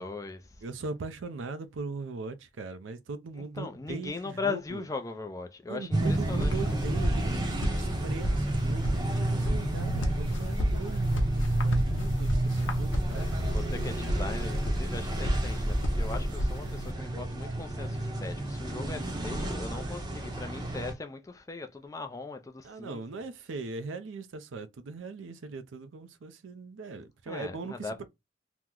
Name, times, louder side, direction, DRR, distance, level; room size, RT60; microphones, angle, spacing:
voice 1, 0.0-0.6 3.6-7.0 13.1-23.2 27.3-27.9, left 3 dB, 15° left, 0.3 m, -39 dB
voice 2, 0.6-4.8 5.7-13.8 14.2-14.6 16.6-17.1 19.2-20.2 22.6-28.0, right 4 dB, 85° right, 0.5 m, -40 dB
sound 1, 5.9-20.9, right 1 dB, 20° right, 0.6 m, -31 dB
sound 2, 6.0-16.9, equal, 85° left, 0.8 m, -32 dB
3.0 x 2.0 x 3.5 m
head